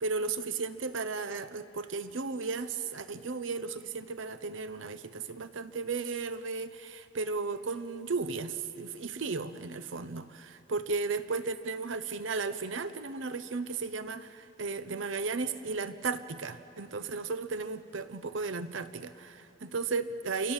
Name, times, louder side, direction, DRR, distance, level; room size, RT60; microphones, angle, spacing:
voice 1, 0.0-20.5, right 4 dB, 70° right, 12 dB, 0.8 m, -35 dB
29.5 x 24.0 x 7.3 m, 2.9 s
head